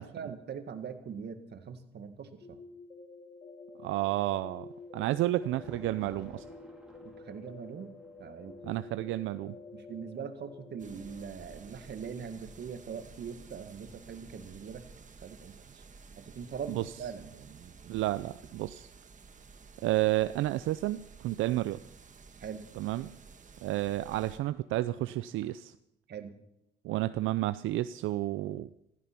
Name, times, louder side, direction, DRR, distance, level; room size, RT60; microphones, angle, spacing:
voice 1, 0.0-2.6 7.0-7.9 8.2-8.8 9.7-14.9 15.2-15.8 16.2-18.1 21.4-21.6 22.4-22.7 26.1-26.4, right 6 dB, 60° right, 8 dB, 1.9 m, -42 dB
sound 1, 2.4-14.1, left 3 dB, 30° left, 4.3 m, -50 dB
voice 2, 3.8-4.7 4.9-6.4 8.6-9.5 16.7-16.9 17.9-18.9 19.8-21.8 22.8-23.2 23.6-25.7 26.8-28.7, right 15 dB, 85° right, 13 dB, 0.5 m, -31 dB
Thunder, 4.4-11.6 12.7-14.4, right 1 dB, 5° right, 3.3 m, -58 dB
Rain on Window with Thunder, 10.8-24.4, right 5 dB, 40° right, 1.6 m, -53 dB
15.5 x 14.5 x 5.9 m, 0.84 s
cardioid pair, 90°, 20 cm